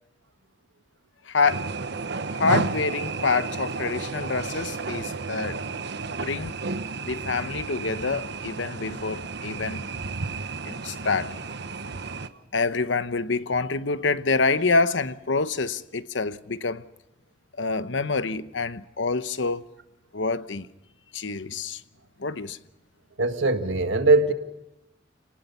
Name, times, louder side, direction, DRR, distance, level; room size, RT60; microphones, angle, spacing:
voice 1, 1.3-1.7 2.3-5.6 6.2-6.6 7.0-9.9 10.7-11.4 12.5-16.8 17.6-19.7 20.1-20.7 21.1-21.8 22.2-22.6, left 4 dB, 75° left, 1.0 m, -26 dB
sound 1, 1.5-12.3, right 4 dB, 65° right, 1.1 m, -32 dB
voice 2, 23.2-24.3, right 3 dB, 85° right, 1.7 m, -20 dB
29.5 x 19.0 x 5.6 m
head